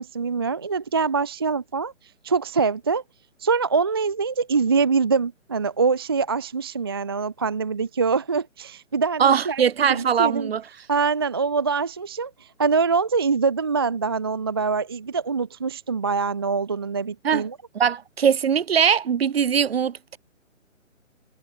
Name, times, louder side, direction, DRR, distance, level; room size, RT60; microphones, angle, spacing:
voice 1, 0.0-1.9 2.2-3.0 3.4-10.5 10.9-17.6, right 5 dB, 20° right, 0.6 m, -24 dB
voice 2, 9.2-10.6 17.2-17.4 17.7-20.2, right 7 dB, 50° right, 1.5 m, -21 dB
hypercardioid pair, 160°, 39 cm